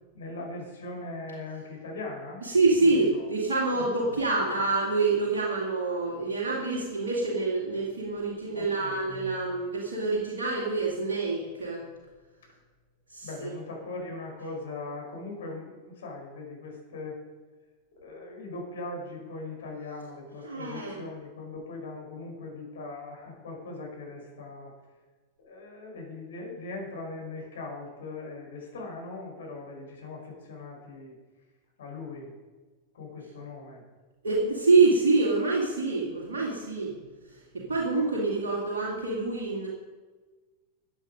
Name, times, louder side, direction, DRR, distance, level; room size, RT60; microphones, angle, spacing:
voice 1, 0.1-2.4 2.8-3.3 3.7-3.9 8.5-9.0 13.2-17.2 18.0-24.7 25.4-31.1 31.8-32.3 32.9-33.8, left 3 dB, 65° left, 0 dB, 4.9 m, -40 dB
voice 2, 2.4-11.8 13.1-13.5 20.4-21.0 34.2-36.9 37.3-39.7, right 3 dB, 65° right, -4 dB, 2.5 m, -26 dB
14.5 x 8.9 x 5.3 m, 1.3 s
figure-of-eight pair, 90°, 0 cm